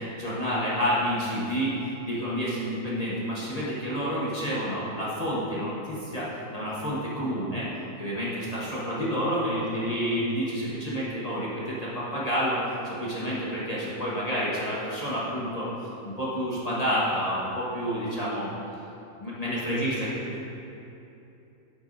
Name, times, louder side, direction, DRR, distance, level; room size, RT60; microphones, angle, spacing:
voice 1, 0.2-1.7 2.0-5.8 6.1-6.2 6.5-7.6 8.0-11.5 12.1-12.6 13.0-15.6 16.2-18.5 19.2-19.9, equal, 25° left, -8 dB, 1.2 m, -29 dB
voice 2, 9.5-10.3 19.5-20.4, equal, 70° right, -6 dB, 2.0 m, -42 dB
9.2 x 8.0 x 2.7 m, 2.8 s
omnidirectional pair, 1.6 m